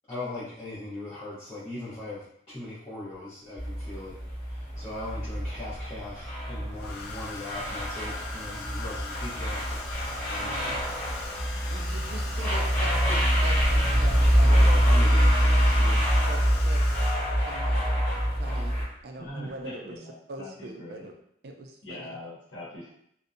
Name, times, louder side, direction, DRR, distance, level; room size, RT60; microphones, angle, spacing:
voice 1, 0.1-10.8 14.4-16.1, left 2 dB, 30° left, -12 dB, 0.7 m, -39 dB
sound 1, 3.6-18.8, equal, 45° left, 1.5 m, -25 dB
Domestic sounds home sounds, 6.7-17.5 18.7-19.0 19.2-19.6, left 3 dB, 60° left, 0.3 m, -40 dB
voice 2, 10.4-10.8 11.7-14.8 16.2-16.8 17.5-17.9 18.3-18.8 19.0-20.0 20.3-21.2 21.4-22.2, right 2 dB, 60° right, 3 dB, 0.3 m, -42 dB
voice 3, 19.2-21.1 21.8-22.9, left 1 dB, 90° left, -6 dB, 0.8 m, -41 dB
2.6 x 2.0 x 2.4 m, 0.71 s
head